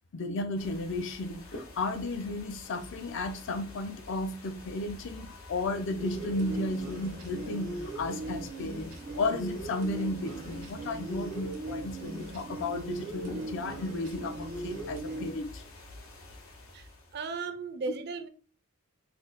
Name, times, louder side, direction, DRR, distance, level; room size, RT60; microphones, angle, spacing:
voice 1, 0.1-15.6, left 2 dB, 60° left, 0.5 m, -34 dB
sound 1, 0.6-17.4, left 2 dB, 80° left, 1.0 m, -48 dB
sound 2, 6.0-15.3, right 1 dB, 90° right, 0.8 m, -39 dB
voice 2, 16.7-18.3, right 4 dB, 50° right, 0.4 m, -36 dB
3.3 x 2.1 x 3.9 m
head